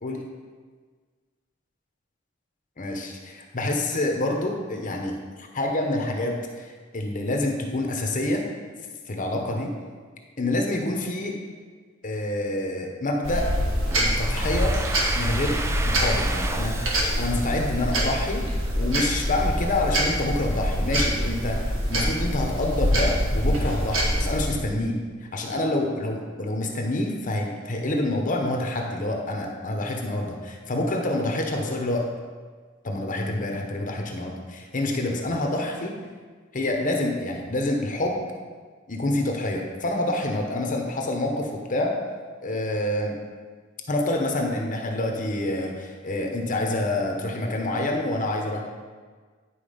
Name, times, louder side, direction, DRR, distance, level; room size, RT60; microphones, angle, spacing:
voice 1, 2.8-8.4 9.1-9.7 10.4-11.4 12.0-13.5 13.9-14.8 15.1-15.6 16.0-16.8 17.2-18.5 18.8-25.0 25.3-32.1 32.8-36.0 36.5-38.2 38.9-42.0 42.4-43.1 43.9-48.6, left 1 dB, 40° left, 2 dB, 1.0 m, -27 dB
sound 1, 13.2-24.5, equal, 70° right, 1.7 m, -25 dB
Domestic sounds home sounds, 13.9-18.7, right 2 dB, 15° right, 0.4 m, -34 dB
10.5 x 4.7 x 5.1 m, 1.5 s
head